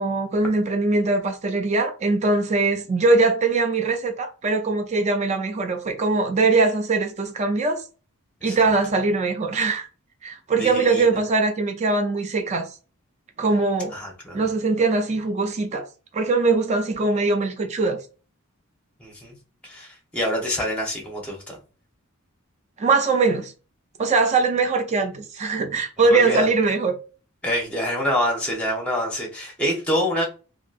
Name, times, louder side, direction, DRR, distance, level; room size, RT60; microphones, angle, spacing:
voice 1, 0.0-7.8 8.4-9.9 10.2-12.7 13.4-13.9 14.3-15.9 16.1-18.0 22.8-23.5 24.0-27.0, right 3 dB, 30° right, 0.4 m, -21 dB
voice 2, 10.6-11.1 13.9-14.4 19.0-19.3 19.6-21.6 26.1-26.5 27.4-30.3, equal, 5° left, 0.8 m, -26 dB
2.8 x 2.6 x 2.4 m
head